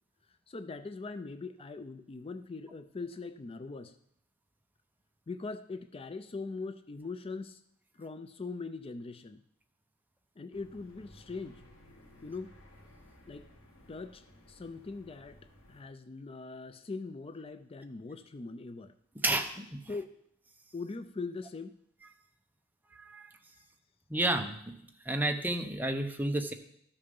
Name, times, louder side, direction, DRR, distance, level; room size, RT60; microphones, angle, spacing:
voice 1, 0.5-4.0 5.3-7.6 7.9-9.4 10.4-11.6 12.2-12.5 13.3-13.5 13.9-15.4 15.7-18.9 19.9-20.1 20.7-21.8 23.5-23.7, left 3 dB, 25° left, 11 dB, 0.4 m, -41 dB
sound 1, 10.5-15.8, left 1 dB, 80° left, 2.3 m, -57 dB
voice 2, 19.2-19.8 23.0-23.3 24.1-24.8 25.1-26.5, right 1 dB, 10° right, 5 dB, 0.8 m, -31 dB
13.0 x 6.6 x 5.3 m, 0.71 s
head